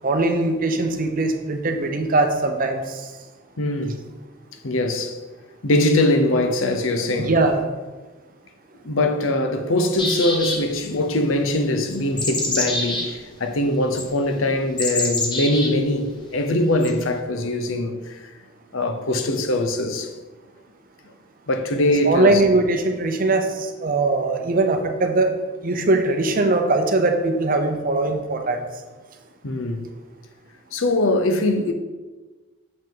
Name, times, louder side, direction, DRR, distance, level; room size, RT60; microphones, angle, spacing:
voice 1, 0.0-3.0 7.2-7.6 22.0-25.3 25.6-28.7, right 2 dB, 40° right, 0.7 m, -21 dB
voice 2, 3.6-4.0 4.6-5.2 5.6-7.4 8.8-18.3 18.7-20.1 21.5-22.4 29.4-29.9 30.7-31.7, left 1 dB, 65° left, 0.8 m, -22 dB
sound 1, 9.9-10.9 11.9-13.1 14.0-14.1 14.8-15.7 16.8-16.9, left 2 dB, 20° left, 0.9 m, -25 dB
7.2 x 5.3 x 3.9 m
head